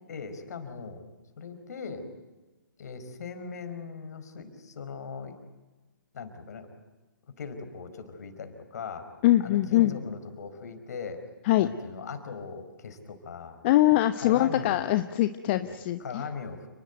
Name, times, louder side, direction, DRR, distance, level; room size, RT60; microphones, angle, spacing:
voice 1, 0.1-1.0 1.4-2.0 2.8-5.4 6.1-6.7 7.4-9.1 9.4-11.2 11.6-13.6 14.1-14.9 15.6-16.7, left 5 dB, 50° left, 9 dB, 4.9 m, -39 dB
voice 2, 9.2-9.9 11.5-11.7 13.6-16.0, left 15 dB, 30° left, 11 dB, 1.0 m, -22 dB
30.0 x 20.5 x 9.2 m, 1.2 s
figure-of-eight pair, 130°, 11 cm